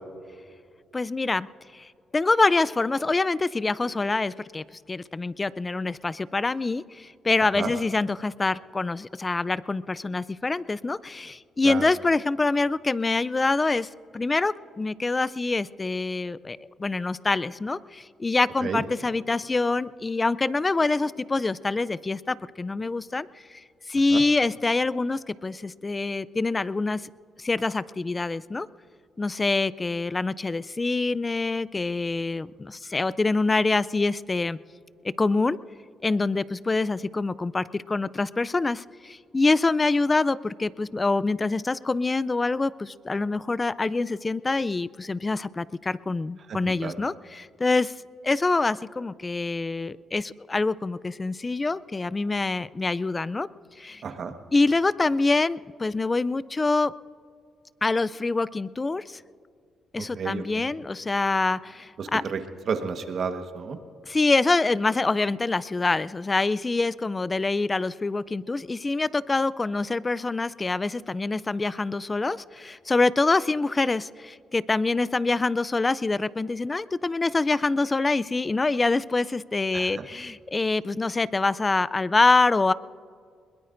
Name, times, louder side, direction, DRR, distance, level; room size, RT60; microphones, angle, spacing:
voice 1, 0.9-1.5 1.7-1.9 2.1-23.6 23.9-27.0 27.4-28.7 29.2-34.6 35.2-35.6 36.0-47.9 48.2-53.5 53.8-54.0 54.5-56.9 57.8-59.2 59.9-62.2 64.0-82.7, left 3 dB, 25° left, 19 dB, 0.4 m, -25 dB
voice 2, 46.5-46.9 54.0-54.3 60.0-60.7 62.0-62.4 62.7-63.8 79.7-80.0, right 6 dB, 55° right, 6 dB, 1.3 m, -31 dB
21.5 x 21.0 x 2.6 m, 2.2 s
cardioid pair, 90°, 0 cm